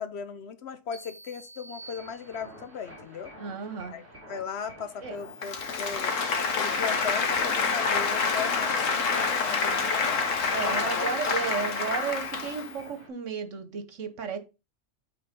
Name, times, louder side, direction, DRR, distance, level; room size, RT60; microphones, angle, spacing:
voice 1, 0.0-3.3 3.9-4.0 4.3-6.1 6.5-10.2 10.8-11.1, left 6 dB, 60° left, 0.9 m, -37 dB
sound 1, 0.9-2.8, right 3 dB, 15° right, 2.5 m, -48 dB
sound 2, 1.8-13.1, equal, 30° right, 3.6 m, -49 dB
voice 2, 3.4-3.9 5.0-5.2 10.5-14.4, right 6 dB, 70° right, 1.4 m, -33 dB
Applause, 5.3-12.8, left 5 dB, 85° left, 1.4 m, -27 dB
8.6 x 3.5 x 5.2 m
omnidirectional pair, 1.3 m